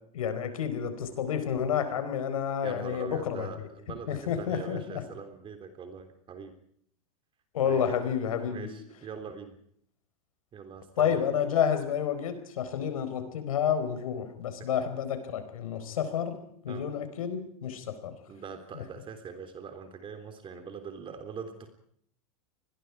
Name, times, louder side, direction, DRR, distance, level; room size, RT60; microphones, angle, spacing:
voice 1, 0.1-3.5 4.1-5.0 7.5-8.7 11.0-16.4 16.6-18.1, left 8 dB, 80° left, 9 dB, 4.5 m, -30 dB
voice 2, 2.6-6.5 7.6-8.0 8.4-9.5 10.5-11.2 14.6-14.7 16.7-16.9 18.3-21.7, right 6 dB, 30° right, 7 dB, 3.4 m, -42 dB
28.0 x 21.0 x 4.8 m, 0.64 s
hypercardioid pair, 110°, 18 cm